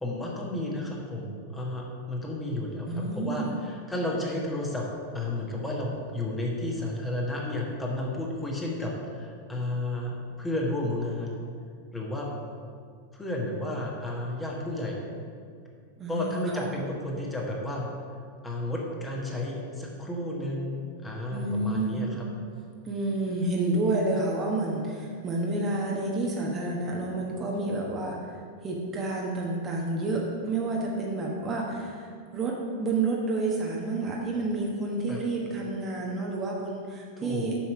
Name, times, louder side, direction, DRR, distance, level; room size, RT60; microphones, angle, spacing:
voice 1, 0.0-4.9 5.1-11.4 11.9-12.3 13.1-15.1 16.1-17.9 18.4-22.3 35.1-35.2 37.2-37.5, left 1 dB, 10° left, -2 dB, 1.4 m, -32 dB
voice 2, 2.9-3.6 16.0-16.7 21.3-22.0 22.8-37.6, right 2 dB, 25° right, -2 dB, 1.1 m, -29 dB
7.5 x 5.7 x 4.9 m, 2.1 s
figure-of-eight pair, 90°, 0 cm